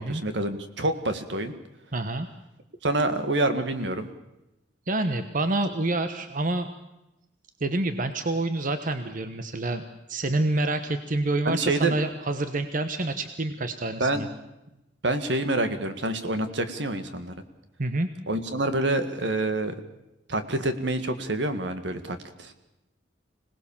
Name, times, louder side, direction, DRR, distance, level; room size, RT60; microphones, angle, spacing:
voice 1, 0.0-1.5 2.8-4.1 11.5-11.9 14.0-14.2 15.0-17.3 18.3-19.8 20.3-22.5, right 2 dB, 70° right, 9 dB, 1.9 m, -27 dB
voice 2, 1.9-2.3 4.9-6.7 7.6-9.8 10.1-14.3 17.8-18.1, right 2 dB, 45° right, 9 dB, 1.1 m, -27 dB
26.0 x 19.0 x 7.3 m, 0.92 s
head